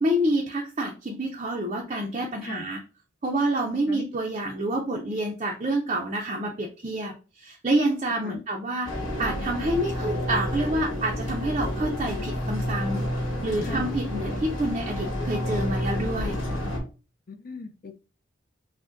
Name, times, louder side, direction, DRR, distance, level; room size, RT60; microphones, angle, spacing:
voice 1, 0.0-2.8 3.2-13.1 13.4-16.4, right 1 dB, 30° right, 0 dB, 0.5 m, -28 dB
sound 1, 8.8-16.8, left 1 dB, 75° left, 1.4 m, -30 dB
voice 2, 13.6-13.9 17.3-17.9, left 3 dB, 45° left, 8 dB, 0.4 m, -38 dB
6.1 x 2.1 x 2.5 m, 0.34 s
head